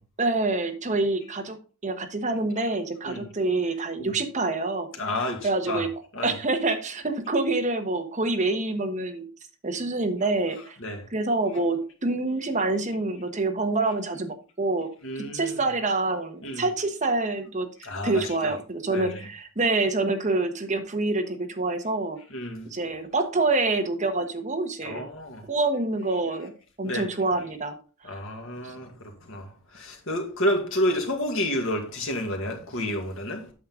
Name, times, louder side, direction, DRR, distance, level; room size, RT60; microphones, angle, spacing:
voice 1, 0.2-1.6 1.8-4.9 5.4-5.9 6.2-9.3 9.6-10.8 11.1-14.9 15.3-17.7 18.0-22.2 22.6-25.1 25.5-26.5 26.8-27.7 28.0-28.2, right 2 dB, 35° right, 1.2 m, -26 dB
voice 2, 5.0-5.8 6.1-6.4 10.8-11.0 15.0-15.6 16.4-16.6 17.8-18.5 18.9-19.2 22.3-22.7 24.8-25.5 26.8-27.1 28.0-33.5, left 1 dB, 75° left, 2.1 m, -30 dB
8.6 x 6.4 x 3.7 m
head